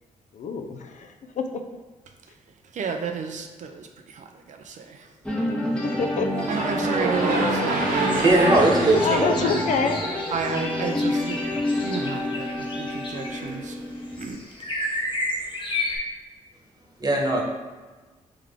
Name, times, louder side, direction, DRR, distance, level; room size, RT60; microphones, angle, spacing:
voice 1, 0.3-1.6 5.7-6.3 9.0-10.0, left 5 dB, 65° left, 5 dB, 0.4 m, -27 dB
voice 2, 2.7-5.1 6.5-9.6 10.3-11.5 11.8-13.8 14.2-14.4, right 5 dB, 65° right, 4 dB, 0.4 m, -32 dB
sound 1, 5.2-14.3, left 1 dB, 5° left, 0.8 m, -29 dB
sound 2, 6.3-10.5, right 2 dB, 85° right, 0.8 m, -27 dB
sound 3, 7.9-16.0, left 1 dB, 35° left, 1.0 m, -33 dB
voice 3, 8.2-9.3 17.0-17.4, right 2 dB, 30° right, -1 dB, 1.1 m, -19 dB
3.7 x 3.2 x 3.5 m, 1.3 s
cardioid pair, 70°, 14 cm